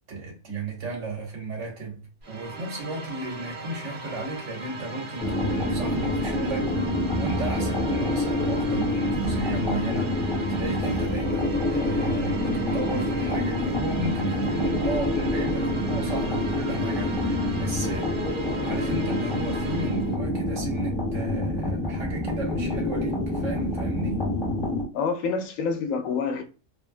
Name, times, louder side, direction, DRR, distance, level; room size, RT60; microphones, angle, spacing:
voice 1, 0.1-6.9 7.2-18.1 18.6-24.2, right 2 dB, 70° right, 1.5 m, -34 dB
sound 1, 2.2-20.2, right 2 dB, 50° right, 0.7 m, -38 dB
sound 2, 5.2-24.8, left 1 dB, 40° left, 1.1 m, -27 dB
voice 2, 24.9-26.4, left 5 dB, 85° left, 1.0 m, -27 dB
3.0 x 2.3 x 2.4 m
omnidirectional pair, 1.4 m